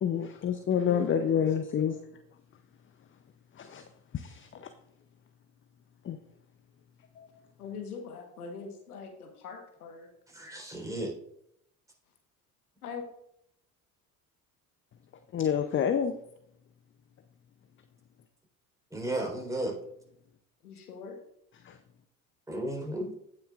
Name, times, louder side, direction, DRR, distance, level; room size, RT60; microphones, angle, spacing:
voice 1, 0.0-2.0 3.6-3.8 4.1-4.7 6.1-6.2 7.2-7.3 15.3-16.1 21.7-21.8, left 8 dB, 30° left, 9 dB, 0.6 m, -28 dB
voice 2, 0.8-1.4 1.7-1.9 7.6-10.1 12.8-13.0 20.6-21.2, left 5 dB, 85° left, 4 dB, 1.4 m, -42 dB
voice 3, 10.3-11.2 18.9-19.8 22.5-23.1, right 1 dB, 5° right, -1 dB, 4.0 m, -34 dB
16.5 x 6.3 x 2.5 m, 0.73 s
hypercardioid pair, 60°, 44 cm